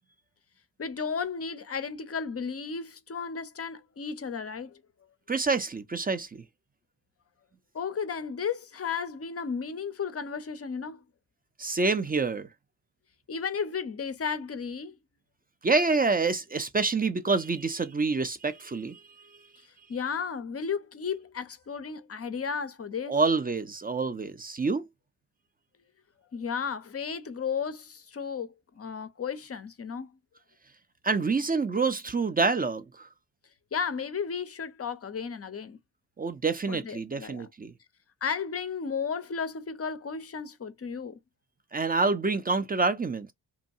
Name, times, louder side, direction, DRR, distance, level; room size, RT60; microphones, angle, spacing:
voice 1, 0.8-4.8 7.7-11.0 13.3-15.0 19.9-23.1 26.3-30.1 33.7-35.8 36.7-37.5 38.2-41.2, left 6 dB, 30° left, 0.5 m, -34 dB
voice 2, 5.3-6.3 11.6-12.5 15.6-19.3 23.1-24.9 31.0-33.1 36.2-37.7 41.7-43.3, right 4 dB, 20° right, 0.4 m, -27 dB
2.7 x 2.2 x 2.7 m
supercardioid pair, 40°, 48 cm